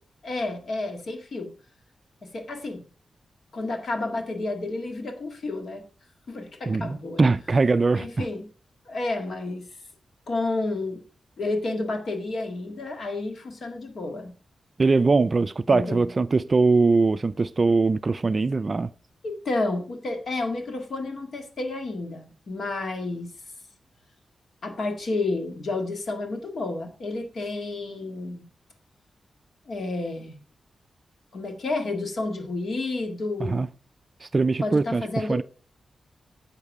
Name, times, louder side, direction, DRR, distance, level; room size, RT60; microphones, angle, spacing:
voice 1, 0.2-1.5 2.2-2.8 3.5-5.8 6.3-7.3 8.0-8.5 8.9-9.7 10.3-11.0 11.4-14.3 15.7-16.0 19.2-23.3 24.6-28.5 29.7-30.4 31.3-33.6 34.6-35.4, left 2 dB, 55° left, 2.0 m, -30 dB
voice 2, 6.7-8.3 14.8-18.9 33.4-33.7 34.3-35.4, right 3 dB, 30° right, 0.4 m, -22 dB
11.0 x 7.3 x 4.8 m
wide cardioid pair, 175°, 0 cm